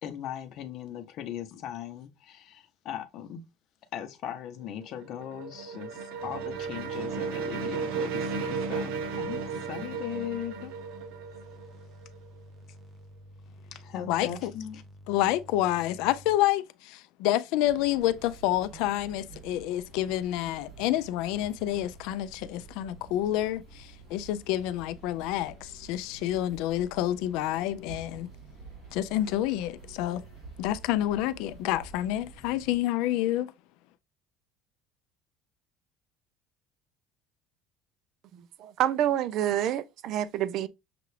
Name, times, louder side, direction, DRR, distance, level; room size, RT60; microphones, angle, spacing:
voice 1, 0.0-3.4 3.9-10.7 13.7-14.8, left 10 dB, 50° left, 0.8 m, -39 dB
sound 1, 4.6-12.4, right 5 dB, 80° right, 0.8 m, -34 dB
sound 2, 6.2-16.4, equal, ahead, 0.7 m, -51 dB
voice 2, 14.1-14.5 15.1-28.3 28.9-30.2 30.6-33.5, left 13 dB, 75° left, 0.3 m, -28 dB
sound 3, 17.6-32.8, right 4 dB, 25° right, 2.6 m, -49 dB
voice 3, 38.3-40.7, right 11 dB, 55° right, 0.4 m, -28 dB
6.7 x 2.5 x 3.2 m
cardioid pair, 145°, 0 cm